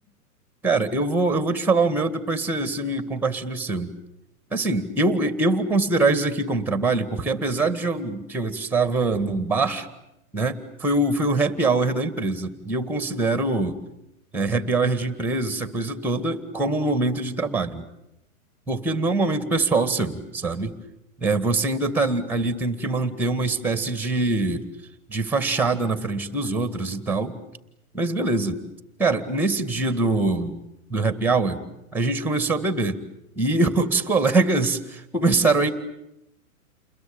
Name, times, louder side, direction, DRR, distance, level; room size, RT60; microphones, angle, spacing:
voice 1, 0.6-3.9 4.5-9.9 10.3-13.8 14.3-17.8 18.7-20.8 21.2-24.7 25.1-27.4 27.9-28.6 29.0-30.6 30.9-31.6 31.9-33.0 33.4-35.7, right 3 dB, 5° right, 12 dB, 1.9 m, -23 dB
29.5 x 21.5 x 8.8 m, 0.86 s
hypercardioid pair, 135°, 44 cm